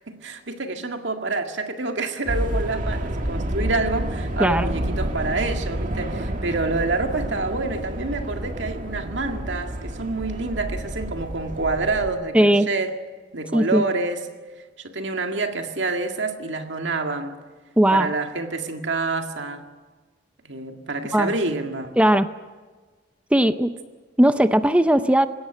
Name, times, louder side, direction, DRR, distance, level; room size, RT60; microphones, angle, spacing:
voice 1, 0.1-13.0 13.3-14.2 14.8-17.3 17.9-19.6 20.4-22.0, right 3 dB, 80° right, 2.0 m, -27 dB
sound 1, 2.3-12.1, right 1 dB, 45° right, 1.9 m, -29 dB
voice 2, 12.3-12.7 13.5-13.8 17.8-18.1 21.1-21.3 22.0-22.3 23.3-23.7 24.2-25.3, right 1 dB, 5° right, 0.6 m, -18 dB
20.5 x 17.0 x 9.0 m
head